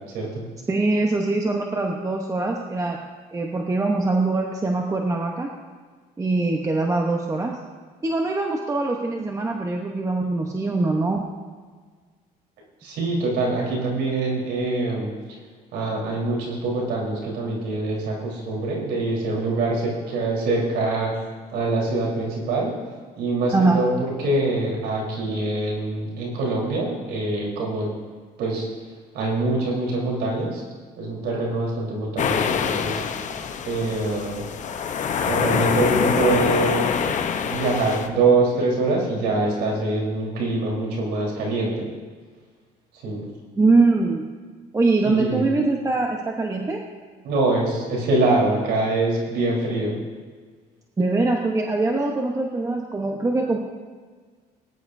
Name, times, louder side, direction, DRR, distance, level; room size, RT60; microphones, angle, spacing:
voice 1, 0.7-3.0 3.3-5.5 6.2-7.6 8.0-11.3 23.5-23.8 43.6-44.2 44.7-46.8 51.0-53.6, right 3 dB, 20° right, 1 dB, 1.0 m, -22 dB
voice 2, 12.8-15.1 15.7-21.2 21.5-22.7 23.2-27.9 28.4-28.7 29.1-30.6 31.0-33.0 33.6-34.4 35.3-37.0 37.5-41.9 43.0-43.3 45.0-45.5 47.2-50.0, right 2 dB, 85° right, -3 dB, 4.0 m, -24 dB
sound 1, 32.2-38.1, left 7 dB, 45° left, 0.8 m, -25 dB
19.0 x 10.5 x 2.7 m, 1.5 s
cardioid pair, 110°, 17 cm